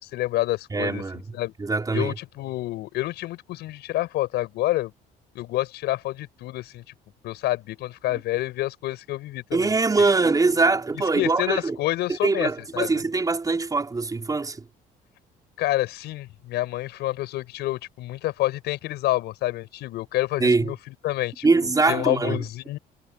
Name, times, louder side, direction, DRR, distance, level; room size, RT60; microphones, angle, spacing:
voice 1, 0.1-1.0 1.3-1.5 1.9-4.9 5.3-6.8 7.2-10.2 11.1-12.9 15.6-22.8, left 16 dB, 80° left, 6.7 m, -28 dB
voice 2, 0.7-1.2 1.6-2.1 9.5-11.8 12.2-14.7 20.4-20.7 21.4-22.4, right 3 dB, 20° right, 5.1 m, -22 dB
cardioid pair, 110°, 17 cm